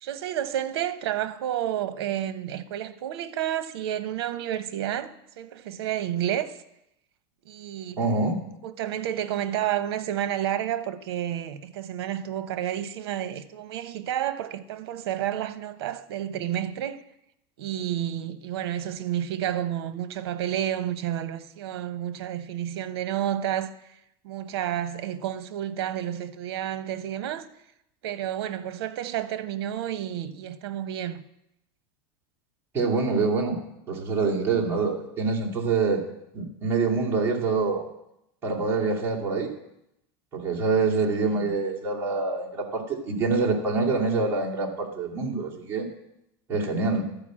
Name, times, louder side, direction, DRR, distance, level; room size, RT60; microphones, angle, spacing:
voice 1, 0.0-6.6 7.5-8.0 8.6-17.0 17.6-23.7 24.2-27.5 28.0-31.2 41.4-41.5, right 11 dB, 80° right, 0.8 m, -30 dB
voice 2, 8.0-8.4 32.7-33.6 33.9-36.0 36.3-37.8 38.4-39.5 40.3-45.9 46.5-47.0, right 4 dB, 20° right, 2.3 m, -25 dB
12.5 x 5.1 x 7.4 m
supercardioid pair, 165°, 13 cm